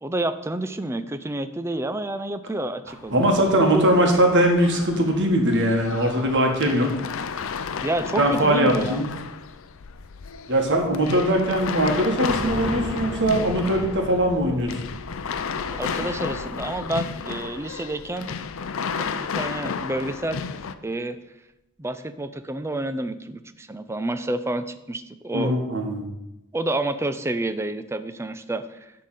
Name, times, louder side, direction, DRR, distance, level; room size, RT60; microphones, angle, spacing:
voice 1, 0.0-3.3 3.7-3.9 7.8-9.0 11.2-11.3 15.7-18.3 19.0-20.6 20.8-21.2 21.8-25.5 26.5-28.9, right 1 dB, 10° right, 11 dB, 0.4 m, -29 dB
sound 1, 2.9-20.7, left 6 dB, 65° left, 0.5 m, -33 dB
voice 2, 3.1-6.9 8.2-9.1 10.5-14.7 25.3-26.1, right 1 dB, 55° right, 2 dB, 1.7 m, -21 dB
sound 2, 12.2-17.8 18.1-18.2 18.5-18.6, right 1 dB, 10° left, 2.6 m, -37 dB
10.5 x 3.8 x 7.5 m, 0.91 s
head